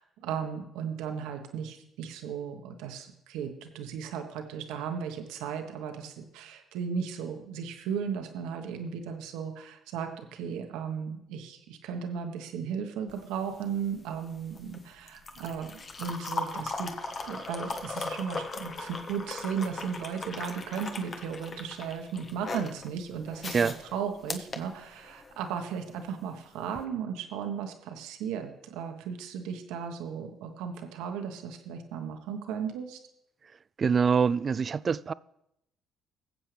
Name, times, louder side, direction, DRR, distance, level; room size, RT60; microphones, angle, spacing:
voice 1, 0.0-16.9 17.2-33.0, right 7 dB, 80° right, 1.3 m, -36 dB
sound 1, 13.1-25.4 26.6-26.8, left 3 dB, 45° left, 1.3 m, -39 dB
voice 2, 33.8-35.1, right 6 dB, 45° right, 0.4 m, -25 dB
21.5 x 7.7 x 3.4 m
supercardioid pair, 65°, 0 cm